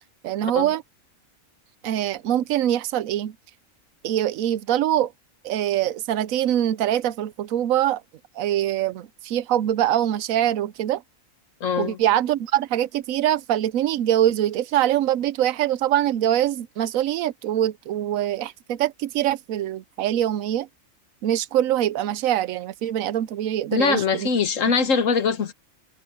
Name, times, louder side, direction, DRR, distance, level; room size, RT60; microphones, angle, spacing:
voice 1, 0.2-0.8 1.8-3.4 4.0-5.1 5.4-8.0 8.4-11.0 11.8-20.7 21.2-24.3, right 12 dB, 80° right, 1.0 m, -23 dB
voice 2, 11.6-12.0 23.7-25.5, left 5 dB, 70° left, 1.6 m, -22 dB
omnidirectional pair, 1.4 m